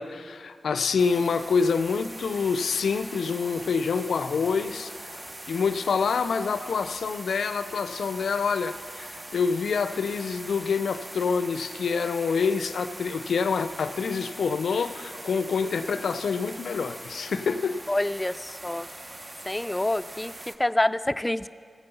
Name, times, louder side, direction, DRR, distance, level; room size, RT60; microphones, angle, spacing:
voice 1, 0.0-17.8, left 5 dB, 90° left, 11 dB, 0.4 m, -27 dB
sound 1, 1.0-20.6, right 1 dB, 30° right, 0.7 m, -42 dB
voice 2, 17.9-18.9 19.4-20.3 20.6-21.5, left 1 dB, 20° left, 14 dB, 0.3 m, -26 dB
15.5 x 5.3 x 6.9 m, 2.1 s
cardioid pair, 45°, 0 cm